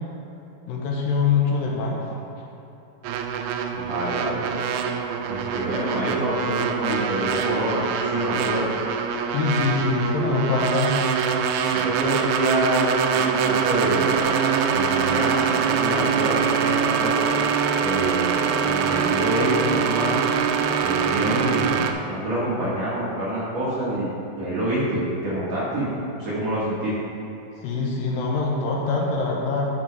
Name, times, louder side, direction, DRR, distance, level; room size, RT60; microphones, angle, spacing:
voice 1, 0.7-2.2 9.3-11.1 27.6-29.7, left 4 dB, 75° left, -2 dB, 2.4 m, -24 dB
sound 1, 3.0-21.9, right 7 dB, 80° right, 2.3 m, -24 dB
voice 2, 3.7-4.6 5.2-8.7 11.7-12.8 13.1-14.1 14.7-17.3 17.8-20.2 20.8-24.1 24.4-25.9 26.2-26.9, right 1 dB, 55° right, -9 dB, 2.2 m, -27 dB
11.5 x 4.4 x 4.7 m, 2.9 s
omnidirectional pair, 4.4 m